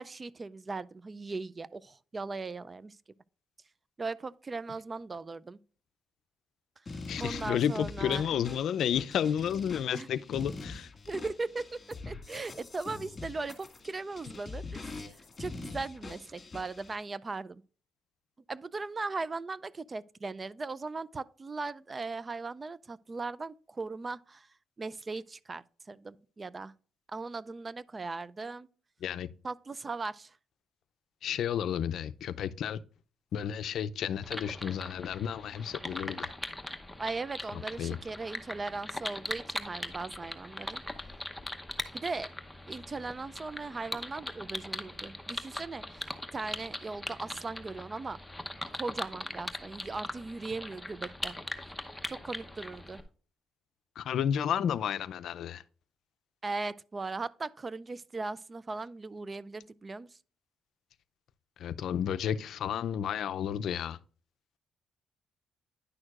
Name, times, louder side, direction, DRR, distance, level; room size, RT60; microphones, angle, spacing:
voice 1, 0.0-3.0 4.0-5.6 7.2-8.3 9.9-10.1 11.1-15.1 15.4-17.6 18.5-24.5 24.8-26.7 27.1-28.7 29.4-30.4 37.0-40.8 41.9-42.3 42.7-48.2 48.7-51.4 52.1-53.0 56.4-60.1, right 3 dB, 30° right, 0.3 m, -38 dB
sound 1, 6.9-17.0, left 3 dB, 30° left, 1.9 m, -44 dB
voice 2, 7.1-10.9 29.0-29.3 31.2-32.8 33.3-36.3 37.8-38.0 54.0-55.6 61.6-64.0, left 9 dB, 70° left, 0.5 m, -31 dB
sound 2, 34.2-53.0, left 1 dB, 5° left, 0.8 m, -40 dB
9.8 x 6.2 x 2.4 m
cardioid pair, 90°, 0 cm